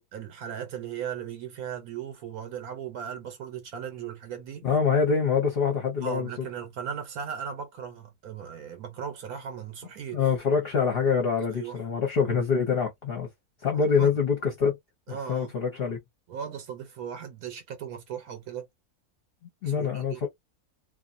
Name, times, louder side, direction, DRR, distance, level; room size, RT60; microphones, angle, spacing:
voice 1, 0.1-4.7 6.0-10.3 11.5-11.8 13.8-14.1 15.1-15.5 16.3-18.7 19.6-20.2, right 8 dB, 75° right, 1.2 m, -37 dB
voice 2, 4.6-6.5 10.1-13.3 13.6-14.7 15.1-16.0 19.6-20.3, left 6 dB, 45° left, 0.9 m, -25 dB
2.4 x 2.4 x 2.5 m
omnidirectional pair, 1.6 m